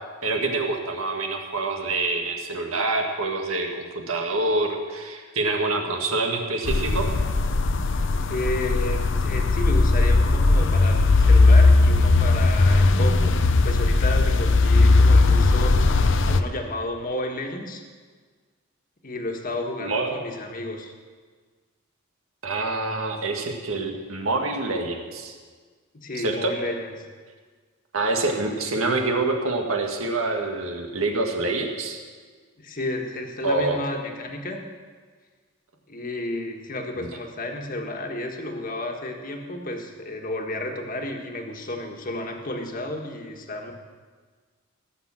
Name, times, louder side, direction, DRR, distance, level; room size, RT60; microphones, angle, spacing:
voice 1, 0.2-7.1 19.8-20.1 22.4-25.4 26.1-26.5 27.9-32.0 33.4-33.8 36.9-37.1, right 2 dB, 80° right, 2 dB, 1.9 m, -26 dB
sound 1, 6.7-16.4, left 3 dB, 60° left, 0.7 m, -18 dB
voice 2, 8.3-17.8 19.0-20.9 25.9-26.9 32.6-34.6 35.9-43.7, left 1 dB, 40° left, 2 dB, 1.6 m, -32 dB
17.5 x 7.4 x 7.5 m, 1.5 s
head